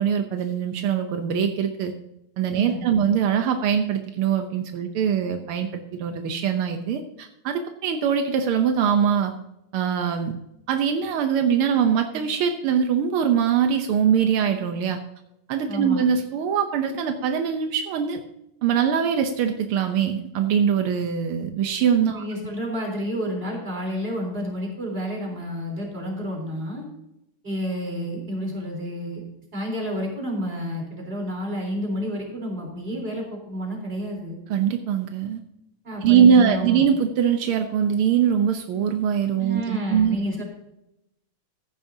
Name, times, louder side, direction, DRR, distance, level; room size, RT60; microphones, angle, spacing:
voice 1, 0.0-1.9 2.4-9.3 9.7-10.4 10.7-15.0 15.5-18.2 18.6-22.2 34.5-35.4 36.0-40.2, right 8 dB, 80° right, 6 dB, 1.7 m, -22 dB
voice 2, 2.5-3.0 15.7-16.0 22.1-26.8 27.4-29.2 29.5-34.4 35.8-36.8 39.4-40.4, equal, 25° right, -1 dB, 3.9 m, -30 dB
14.5 x 11.0 x 2.7 m, 0.85 s
omnidirectional pair, 2.3 m